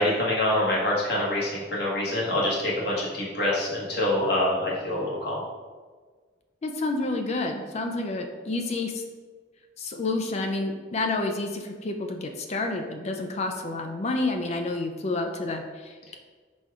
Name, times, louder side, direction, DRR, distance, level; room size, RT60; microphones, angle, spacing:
voice 1, 0.0-5.4, left 1 dB, 55° left, -6 dB, 1.3 m, -25 dB
voice 2, 6.6-9.0 9.8-16.2, left 2 dB, 35° left, 4 dB, 0.4 m, -29 dB
4.2 x 2.3 x 4.7 m, 1.5 s
head